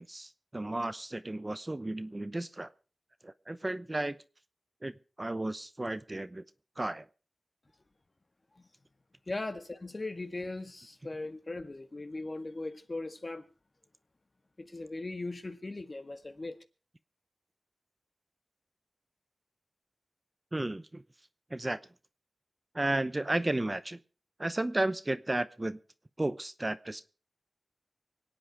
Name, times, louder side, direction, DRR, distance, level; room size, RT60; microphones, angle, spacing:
voice 1, 0.0-2.7 3.2-4.2 4.8-4.9 5.2-6.4 6.8-7.1 20.5-21.0 21.5-21.8 22.7-24.0 24.4-25.8 26.2-27.0, right 1 dB, 30° right, 0.8 m, -33 dB
voice 2, 9.3-13.4 14.6-16.5, left 2 dB, 45° left, 1.8 m, -39 dB
24.5 x 8.7 x 4.8 m
cardioid pair, 45°, 0 cm